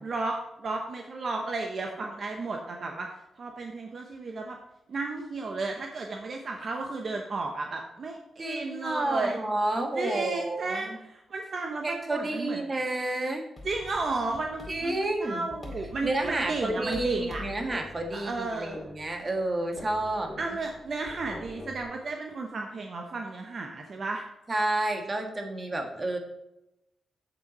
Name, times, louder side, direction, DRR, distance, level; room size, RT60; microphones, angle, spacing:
voice 1, 0.0-3.1 3.4-4.6 4.9-9.4 9.9-12.6 13.6-17.4 18.1-18.8 20.4-24.2, right 3 dB, 50° right, 2 dB, 1.0 m, -33 dB
voice 2, 8.4-11.0 11.8-13.5 14.7-15.5 16.0-20.3 24.5-26.2, right 1 dB, 25° right, 3 dB, 1.5 m, -30 dB
sound 1, 13.6-21.8, left 2 dB, 25° left, 2.2 m, -45 dB
8.0 x 7.8 x 4.2 m, 0.89 s
cardioid pair, 115°, 0 cm